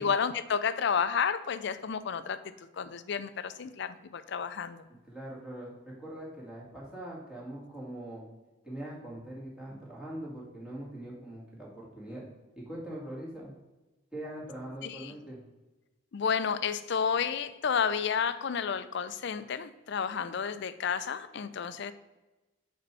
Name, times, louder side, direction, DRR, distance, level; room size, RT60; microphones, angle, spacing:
voice 1, 0.0-2.4 2.7-4.8 14.8-15.1 16.1-21.9, left 6 dB, 55° left, 12 dB, 0.4 m, -31 dB
voice 2, 5.1-8.2 8.6-12.2 12.6-13.5 14.1-15.4, right 1 dB, 5° right, -5 dB, 2.0 m, -42 dB
5.0 x 4.5 x 6.0 m, 1.1 s
head